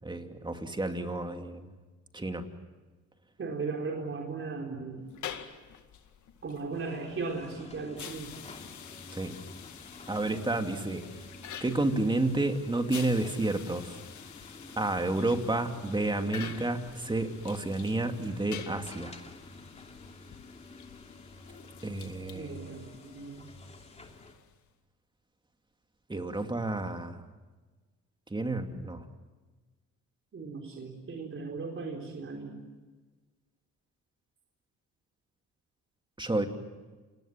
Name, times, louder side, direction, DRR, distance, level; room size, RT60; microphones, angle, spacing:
voice 1, 0.0-1.7 2.1-2.4 9.1-9.4 10.1-11.0 11.6-14.0 14.8-19.2 21.8-22.7 26.1-27.2 28.3-29.0 36.2-36.5, right 2 dB, 15° right, 5 dB, 2.7 m, -30 dB
voice 2, 3.4-5.1 6.4-8.3 22.3-23.5 30.3-32.6, right 4 dB, 45° right, 0 dB, 4.2 m, -37 dB
sound 1, 5.1-24.7, left 9 dB, 75° left, 2.1 m, -48 dB
sound 2, 6.7-24.3, left 2 dB, 20° left, 3.0 m, -50 dB
29.0 x 20.5 x 7.6 m, 1.3 s
cardioid pair, 90°, 30 cm